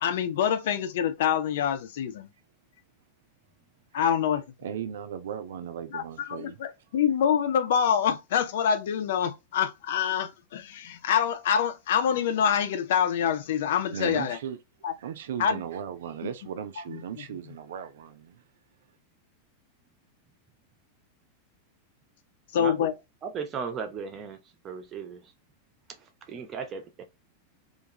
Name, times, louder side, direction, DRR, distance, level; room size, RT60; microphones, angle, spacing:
voice 1, 0.0-2.3 3.9-4.4 5.9-14.4 14.8-14.9 15.4-15.6 16.2-16.3 16.9-17.0 22.5-22.9, left 8 dB, 55° left, 0.4 m, -26 dB
voice 2, 4.6-6.6 13.9-14.6 15.0-18.4, right 8 dB, 60° right, 0.4 m, -37 dB
voice 3, 23.2-24.4 24.6-25.2 26.3-27.0, right 6 dB, 30° right, 0.6 m, -36 dB
2.5 x 2.3 x 2.8 m
figure-of-eight pair, 90°, 0 cm